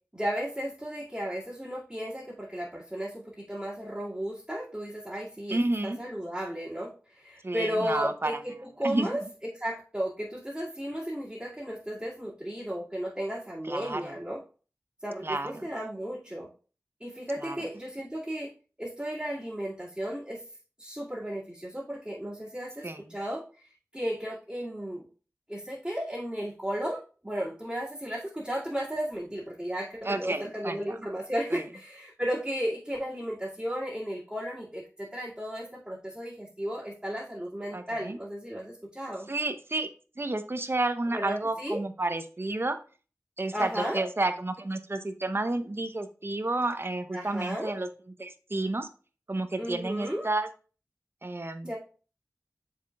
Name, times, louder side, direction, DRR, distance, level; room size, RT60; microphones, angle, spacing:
voice 1, 0.1-8.5 8.8-9.2 9.5-14.4 15.0-16.5 17.0-18.5 18.8-20.4 20.8-25.0 25.5-39.3 41.1-41.8 43.5-44.0 47.1-47.7 49.6-50.3 51.6-51.8, equal, 15° right, -9 dB, 2.2 m, -34 dB
voice 2, 5.5-6.0 7.4-8.3 8.8-9.1 13.7-14.1 15.2-15.7 17.4-17.6 22.8-23.1 30.0-31.1 31.5-31.6 37.7-38.2 39.3-39.9 40.2-42.8 43.4-47.9 48.2-48.9 49.3-50.5 51.2-51.8, right 2 dB, 45° right, 8 dB, 0.8 m, -31 dB
7.1 x 5.7 x 2.4 m, 0.37 s
wide cardioid pair, 55°, 6 cm